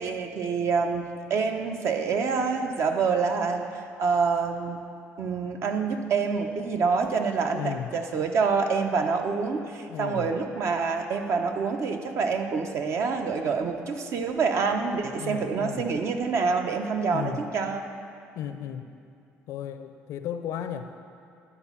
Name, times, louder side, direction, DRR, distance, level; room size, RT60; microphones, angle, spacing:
voice 1, 0.0-3.7 4.0-4.8 5.2-17.8, right 5 dB, 60° right, 5 dB, 0.8 m, -26 dB
voice 2, 7.5-7.9 9.9-10.3 15.2-15.8 17.1-17.4 18.4-18.9 19.5-20.9, left 9 dB, 75° left, 9 dB, 0.5 m, -34 dB
10.5 x 4.2 x 7.1 m, 2.5 s
supercardioid pair, 80°, 5 cm